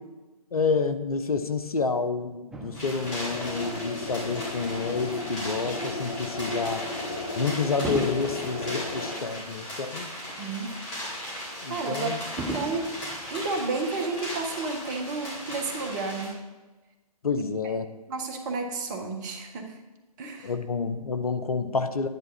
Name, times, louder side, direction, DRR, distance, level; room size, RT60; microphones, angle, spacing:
voice 1, 0.5-6.8 7.4-10.1 11.6-12.2 17.2-17.8 20.4-22.1, left 4 dB, 70° left, 10 dB, 0.9 m, -29 dB
Fireworks, 2.5-5.1 5.8-6.0 7.8-10.4 10.7-10.8 12.4-14.3 15.0-15.1, right 1 dB, 5° right, 0.4 m, -40 dB
sound 1, 2.7-16.3, left 1 dB, 20° left, 4.5 m, -37 dB
sound 2, 3.0-9.2, left 2 dB, 50° left, 1.4 m, -35 dB
voice 2, 10.4-10.8 11.7-12.1 12.4-13.0 13.3-16.4 18.1-19.8 20.2-20.5, right 3 dB, 30° right, 4 dB, 1.5 m, -31 dB
10.5 x 10.5 x 4.3 m, 1.2 s
figure-of-eight pair, 130°, 20 cm